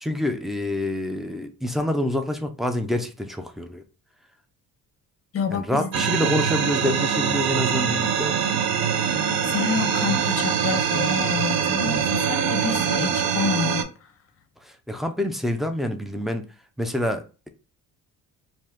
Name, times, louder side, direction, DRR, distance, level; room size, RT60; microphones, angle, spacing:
voice 1, 0.0-3.8 5.5-8.4 14.6-16.4 16.8-17.5, left 1 dB, ahead, 0.3 m, -27 dB
voice 2, 5.3-5.9 9.1-14.1, left 6 dB, 35° left, 0.7 m, -28 dB
sound 1, 5.9-13.8, right 7 dB, 70° right, 0.6 m, -23 dB
2.7 x 2.3 x 3.3 m
cardioid pair, 90°, 38 cm